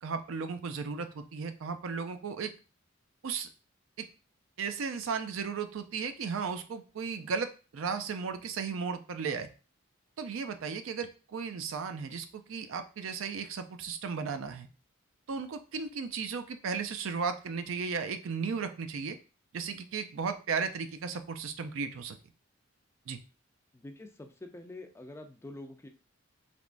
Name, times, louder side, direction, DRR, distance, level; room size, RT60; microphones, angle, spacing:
voice 1, 0.0-2.5 3.2-3.5 4.0-4.1 4.6-9.5 10.2-14.7 15.3-19.2 19.5-22.2 23.1-23.2, right 5 dB, 70° right, 9 dB, 0.4 m, -35 dB
voice 2, 23.7-25.9, left 2 dB, 15° left, 5 dB, 0.3 m, -46 dB
3.4 x 2.9 x 2.5 m, 0.33 s
head